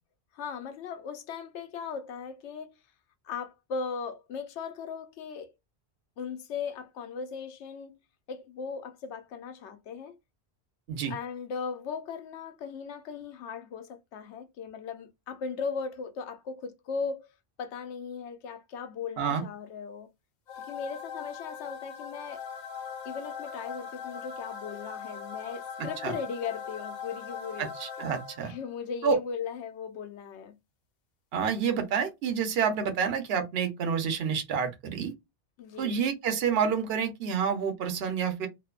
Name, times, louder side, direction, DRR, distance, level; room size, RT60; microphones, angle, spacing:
voice 1, 0.3-2.8 3.2-5.5 6.2-7.9 8.3-10.2 11.1-17.3 17.6-20.1 20.6-22.4 23.0-27.7 28.4-30.6 35.6-36.0, left 5 dB, 85° left, 0.9 m, -38 dB
sound 1, 20.5-28.7, left 6 dB, 55° left, 0.5 m, -40 dB
voice 2, 27.6-28.5 29.0-29.2 31.3-35.1 35.8-38.5, right 6 dB, 65° right, 0.9 m, -28 dB
2.6 x 2.1 x 2.3 m
omnidirectional pair, 1.1 m